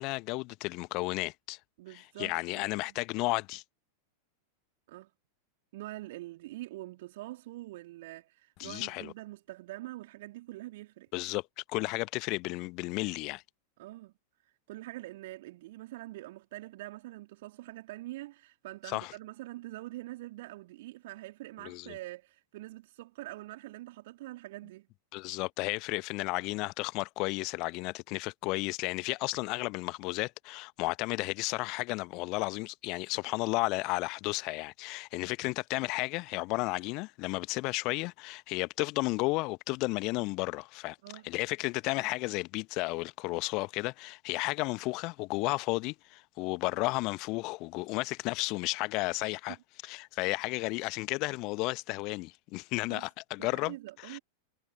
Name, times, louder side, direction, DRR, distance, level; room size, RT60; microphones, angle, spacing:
voice 1, 0.0-1.6 1.9-3.6 8.6-9.1 11.1-13.4 18.9-19.1 21.6-21.9 25.1-41.0 41.2-49.6 49.8-53.7 54.0-54.2, left 24 dB, 40° left, 1.1 m, -33 dB
voice 2, 1.8-2.9 4.9-5.1 5.7-11.1 13.8-14.1 14.7-24.9 41.0-41.3 52.9-53.1 53.4-54.2, right 17 dB, 55° right, 3.1 m, -44 dB
figure-of-eight pair, 90°, 0 cm